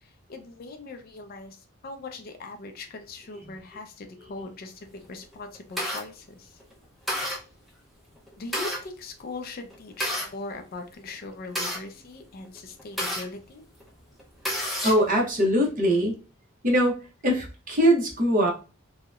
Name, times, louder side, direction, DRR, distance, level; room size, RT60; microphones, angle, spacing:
voice 1, 0.0-6.6 8.4-13.7, left 3 dB, 45° left, 7 dB, 0.4 m, -40 dB
sound 1, 5.0-6.0 6.6-6.7 7.1-7.4 8.2-8.8 9.7-10.3 11.1-13.2 13.8-13.9 14.2-15.1, equal, ahead, 0.6 m, -30 dB
voice 2, 14.8-16.2 16.6-17.0 17.2-18.5, equal, 40° right, -1 dB, 0.7 m, -22 dB
2.7 x 2.0 x 2.3 m, 0.33 s
head